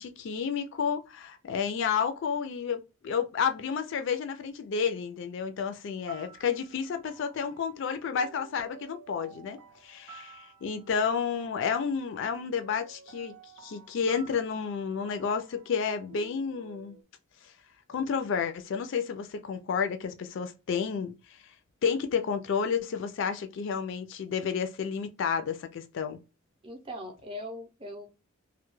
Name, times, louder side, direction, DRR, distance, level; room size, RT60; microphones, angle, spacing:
voice 1, 0.0-13.4 13.6-17.0 17.4-17.5 17.9-21.4 21.8-26.2, left 6 dB, 60° left, 0.3 m, -31 dB
sound 1, 5.9-17.0, right 5 dB, 85° right, 0.5 m, -53 dB
voice 2, 26.6-28.2, left 1 dB, 25° right, 0.5 m, -40 dB
2.2 x 2.1 x 3.0 m
head